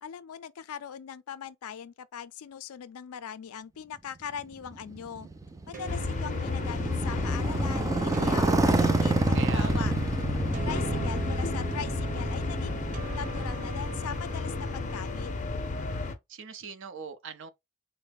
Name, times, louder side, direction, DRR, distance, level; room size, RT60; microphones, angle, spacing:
voice 1, 0.0-5.3 5.7-9.9 10.6-12.8 13.1-15.3, left 8 dB, 85° left, 0.4 m, -40 dB
Motorcycle, 4.4-14.3, right 2 dB, 15° right, 0.3 m, -29 dB
sound 1, 5.7-15.3, right 3 dB, 35° right, 1.0 m, -43 dB
sound 2, 5.9-16.2, left 3 dB, 35° left, 0.5 m, -32 dB
voice 2, 9.3-9.9 16.3-17.5, right 6 dB, 60° right, 0.6 m, -41 dB
3.9 x 2.1 x 3.3 m
head